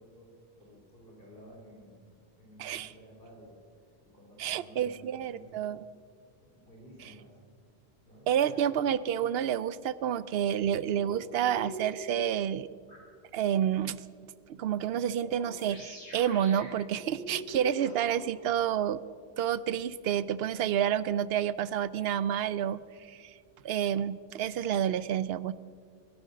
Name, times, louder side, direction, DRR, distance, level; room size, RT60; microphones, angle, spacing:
voice 1, 0.0-5.7 6.4-7.4 8.0-8.8, equal, 55° left, -2 dB, 3.1 m, -54 dB
voice 2, 2.6-2.9 4.4-5.8 8.3-12.7 13.3-14.0 14.5-19.0 19.4-22.8 23.1-23.3 23.6-25.5, right 9 dB, 70° right, 17 dB, 0.8 m, -29 dB
sound 1, 10.6-12.1 12.9-13.0 15.2-18.2, right 1 dB, 90° left, 4.6 m, -44 dB
21.0 x 12.0 x 5.3 m, 2.1 s
omnidirectional pair, 1.1 m